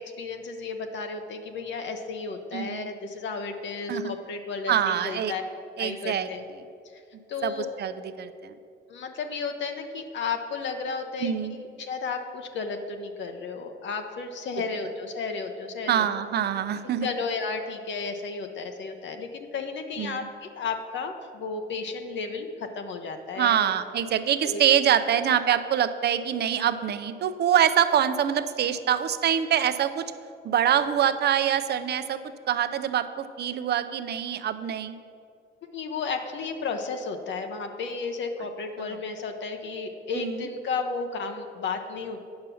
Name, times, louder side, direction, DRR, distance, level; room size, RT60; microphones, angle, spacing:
voice 1, 0.0-5.4 5.8-6.5 6.9-7.0 7.3-7.7 8.9-16.1 17.0-23.6 24.4-24.6 35.7-42.2, left 4 dB, 65° left, 5 dB, 0.8 m, -33 dB
voice 2, 2.5-2.9 3.9-4.1 4.7-5.3 5.8-6.3 7.4-8.5 11.2-11.6 15.9-17.1 20.0-20.3 23.4-30.1 30.4-32.2 32.5-35.0 40.1-40.5, right 9 dB, 55° right, 11 dB, 0.6 m, -25 dB
8.8 x 5.5 x 6.9 m, 2.5 s
cardioid pair, 90°, 20 cm